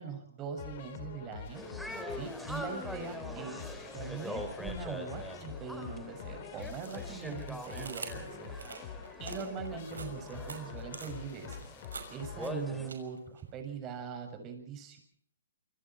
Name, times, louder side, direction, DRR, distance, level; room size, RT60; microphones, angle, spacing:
voice 1, 0.0-1.6 2.1-8.6 9.2-11.6 12.1-15.0, right 6 dB, 25° right, 6 dB, 6.9 m, -41 dB
sound 1, 0.6-13.0, left 7 dB, 45° left, 4.2 m, -46 dB
sound 2, 1.5-12.9, left 1 dB, ahead, 3.7 m, -43 dB
sound 3, 2.4-2.6 3.0-4.5 5.0-13.4, right 5 dB, 75° right, 6.0 m, -47 dB
28.5 x 25.5 x 4.6 m, 0.64 s
hypercardioid pair, 140°, 0 cm